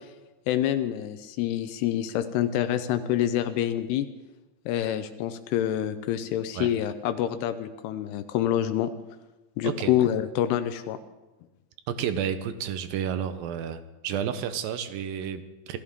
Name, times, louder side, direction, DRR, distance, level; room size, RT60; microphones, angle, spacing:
voice 1, 0.5-4.1 4.7-8.9 9.6-11.0, left 11 dB, 85° left, 10 dB, 2.7 m, -27 dB
voice 2, 11.9-15.8, right 8 dB, 75° right, 10 dB, 2.4 m, -31 dB
26.5 x 15.0 x 3.6 m, 1.1 s
omnidirectional pair, 4.6 m